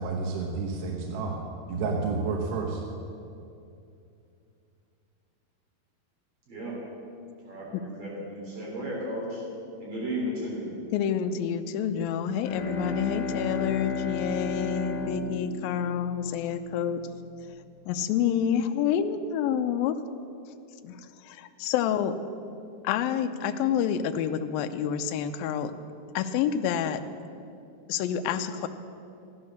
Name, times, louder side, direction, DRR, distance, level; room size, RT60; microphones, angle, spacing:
voice 1, 0.0-1.4 1.7-2.8, right 4 dB, 75° right, -1 dB, 3.2 m, -30 dB
voice 2, 6.5-6.8 7.4-9.4 9.8-10.7, equal, 55° right, -5 dB, 5.4 m, -34 dB
voice 3, 10.9-17.0 17.9-20.0 20.8-22.1 22.8-25.7 26.1-27.0 27.9-28.7, left 8 dB, 85° left, 7 dB, 2.1 m, -28 dB
Bowed string instrument, 12.2-17.0, left 4 dB, 60° left, 2.7 m, -34 dB
14.5 x 12.0 x 6.5 m, 2.6 s
omnidirectional pair, 4.9 m